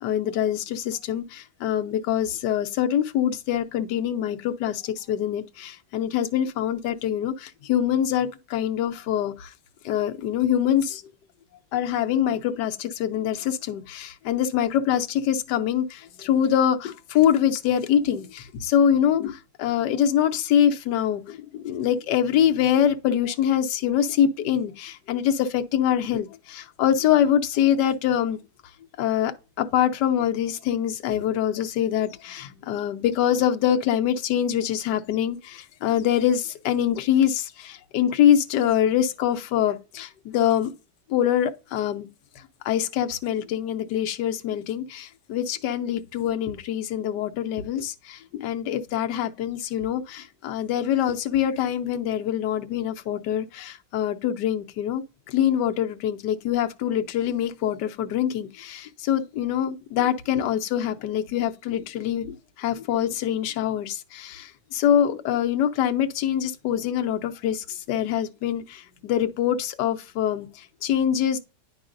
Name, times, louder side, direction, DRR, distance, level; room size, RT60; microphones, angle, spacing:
voice 1, 0.0-9.5 9.8-11.0 11.7-28.4 29.0-29.3 29.6-40.7 41.1-42.1 42.6-71.4, left 10 dB, 75° left, 1.3 m, -24 dB
9.6 x 5.5 x 2.5 m
omnidirectional pair, 1.9 m